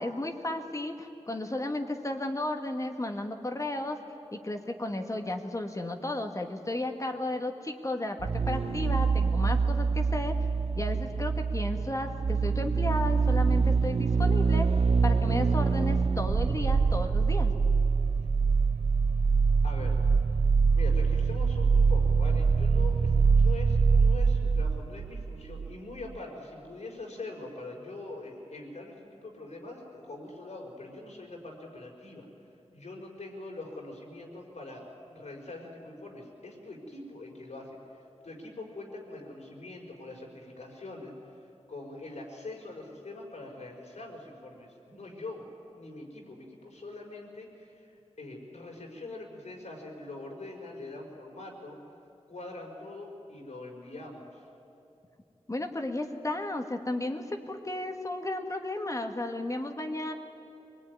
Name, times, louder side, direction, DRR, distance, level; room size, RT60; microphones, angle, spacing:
voice 1, 0.0-4.0 4.3-10.4 10.8-14.7 15.0-17.5 55.5-60.1, left 1 dB, 30° left, 5 dB, 1.7 m, -33 dB
sound 1, 8.2-25.7 26.0-26.1, right 5 dB, 60° right, 0.6 m, -25 dB
voice 2, 19.6-20.0 20.7-28.9 29.2-32.2 32.7-37.7 37.9-41.1 41.7-45.4 45.8-47.9 48.2-51.8 52.3-54.4, left 2 dB, 80° left, 0 dB, 4.8 m, -43 dB
24.0 x 20.0 x 9.7 m, 2.8 s
wide cardioid pair, 95°, 11 cm